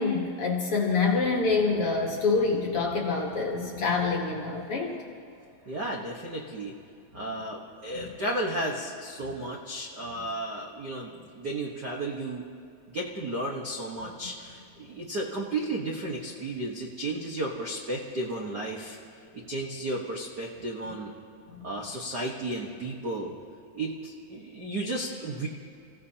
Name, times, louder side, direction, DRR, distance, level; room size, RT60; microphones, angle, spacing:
voice 1, 0.0-5.0 7.9-8.1 21.5-21.6, left 4 dB, 55° left, 0 dB, 1.8 m, -26 dB
voice 2, 5.6-6.7 7.1-12.5 12.9-19.0 19.5-21.1 21.6-23.3 23.7-25.5, right 1 dB, 65° right, -2 dB, 1.0 m, -33 dB
29.5 x 16.0 x 2.9 m, 2.4 s
omnidirectional pair, 3.9 m